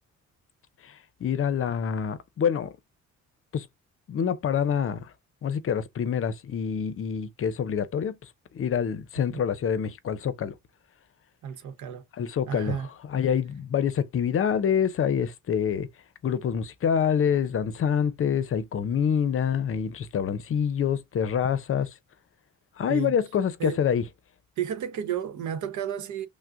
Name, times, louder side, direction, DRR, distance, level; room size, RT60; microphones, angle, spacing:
voice 1, 0.8-2.7 3.5-3.7 4.1-5.1 5.4-10.6 12.1-15.9 16.2-21.9 22.8-24.0, left 7 dB, 45° left, 0.6 m, -26 dB
voice 2, 11.4-12.0 12.5-12.9 22.9-23.1 23.6-23.8 24.6-26.3, right 9 dB, 75° right, 0.9 m, -32 dB
5.8 x 2.1 x 2.4 m
cardioid pair, 90°, 30 cm